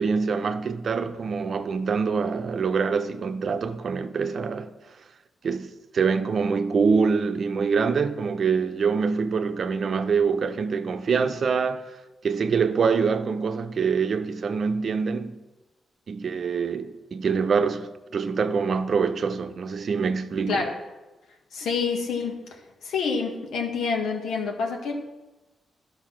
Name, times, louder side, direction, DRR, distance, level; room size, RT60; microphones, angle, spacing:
voice 1, 0.0-4.7 5.4-11.8 12.2-15.3 16.1-20.6, right 5 dB, 55° right, 0.7 m, -25 dB
voice 2, 21.5-24.9, left 5 dB, 85° left, 1.9 m, -28 dB
12.0 x 5.4 x 6.0 m
cardioid pair, 80°, 0 cm